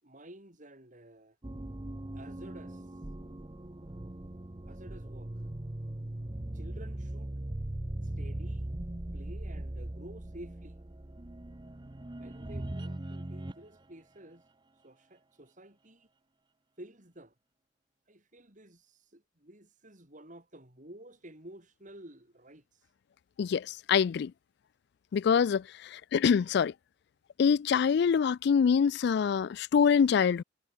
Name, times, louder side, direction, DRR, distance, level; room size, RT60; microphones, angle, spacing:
voice 1, 0.0-1.4 2.1-3.0 4.7-5.5 6.5-7.3 8.0-8.7 9.1-10.8 12.2-14.4 14.8-16.1 16.8-17.3 18.1-22.9, right 1 dB, 40° right, 6.0 m, -52 dB
sound 1, 1.4-13.7, right 1 dB, 25° right, 0.8 m, -39 dB
voice 2, 23.4-24.3 25.1-26.7 27.4-30.4, left 6 dB, 60° left, 0.3 m, -25 dB
head